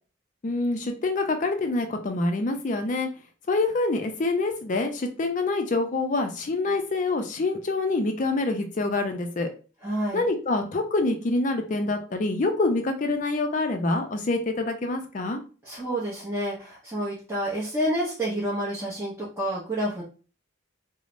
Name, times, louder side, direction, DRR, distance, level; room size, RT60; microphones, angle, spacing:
voice 1, 0.4-3.1 3.5-9.5 10.1-15.4, left 2 dB, 40° left, 5 dB, 0.4 m, -26 dB
voice 2, 9.8-10.3 15.6-20.0, right 1 dB, 15° right, -8 dB, 0.7 m, -29 dB
3.1 x 2.0 x 2.5 m, 0.36 s
head